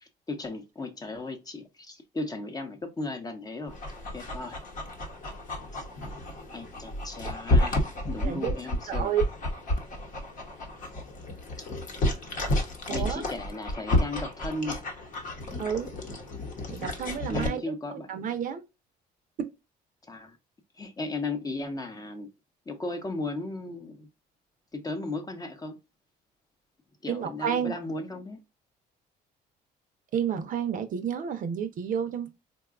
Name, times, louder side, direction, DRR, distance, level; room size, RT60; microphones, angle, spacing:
voice 1, 0.0-3.8 4.1-4.6 5.7-5.8 6.5-9.1 12.9-14.8 17.3-18.2 20.1-20.4 20.8-22.3 22.7-24.1 24.7-25.8 27.0-28.4, left 2 dB, 20° left, 0.7 m, -36 dB
Dog, 3.7-17.5, left 1 dB, 50° left, 0.9 m, -31 dB
voice 2, 8.2-8.5 8.9-9.2 12.9-13.2 15.6-15.9 16.7-18.6 27.1-27.7 30.1-32.3, right 8 dB, 50° right, 0.6 m, -30 dB
3.8 x 2.3 x 2.3 m
cardioid pair, 110°, 17 cm